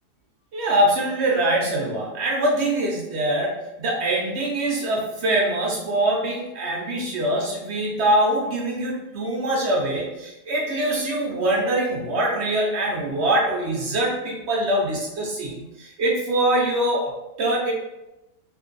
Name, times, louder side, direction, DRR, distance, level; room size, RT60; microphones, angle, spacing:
voice 1, 0.5-17.7, right 1 dB, 70° right, -2 dB, 0.6 m, -23 dB
2.9 x 2.5 x 3.7 m, 0.97 s
omnidirectional pair, 1.7 m